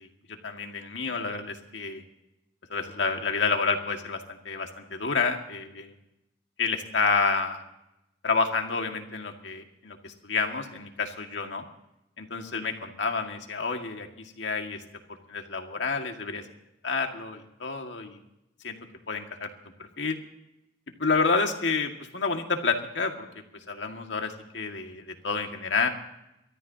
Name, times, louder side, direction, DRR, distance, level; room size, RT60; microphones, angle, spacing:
voice 1, 0.0-2.0 2.7-5.9 6.6-7.6 8.2-11.7 12.2-14.8 15.3-16.4 16.8-18.2 18.6-18.8 19.1-19.5 20.0-20.2 21.0-23.3 23.7-25.9, left 4 dB, 80° left, 4 dB, 1.9 m, -29 dB
29.5 x 13.5 x 2.8 m, 0.88 s
head